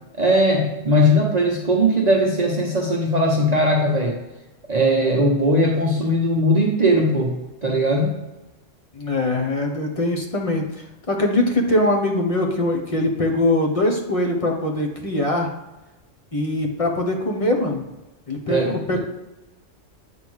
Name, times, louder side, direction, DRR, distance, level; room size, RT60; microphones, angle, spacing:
voice 1, 0.2-4.2 4.7-7.3 7.6-8.1 18.5-19.0, equal, 35° right, -2 dB, 1.0 m, -19 dB
voice 2, 8.9-15.5 16.3-17.8 18.3-18.6 18.9-19.0, left 1 dB, 30° left, 2 dB, 1.2 m, -22 dB
8.9 x 3.5 x 6.4 m, 1.0 s
omnidirectional pair, 1.3 m